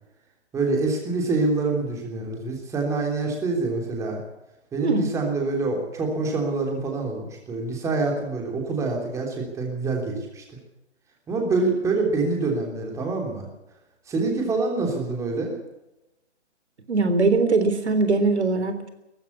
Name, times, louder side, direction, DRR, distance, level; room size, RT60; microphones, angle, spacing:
voice 1, 0.5-4.2 4.7-10.4 11.3-13.5 14.1-15.5, right 3 dB, 10° right, 1 dB, 3.3 m, -26 dB
voice 2, 16.9-18.9, right 3 dB, 65° right, 9 dB, 3.5 m, -21 dB
18.5 x 15.0 x 9.7 m, 0.95 s
figure-of-eight pair, 145°, 36 cm